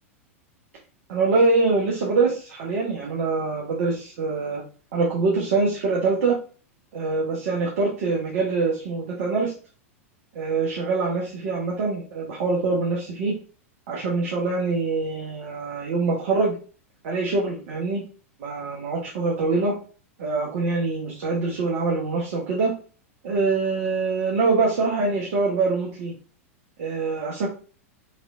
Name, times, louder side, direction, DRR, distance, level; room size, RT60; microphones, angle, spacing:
voice 1, 1.1-4.6 4.9-6.4 6.9-9.5 10.3-13.3 13.9-16.5 17.0-18.0 18.4-19.7 20.2-22.7 23.2-26.1 26.8-27.5, right 3 dB, 60° right, -3 dB, 1.0 m, -24 dB
4.3 x 3.2 x 2.5 m, 0.39 s
figure-of-eight pair, 95°, 8 cm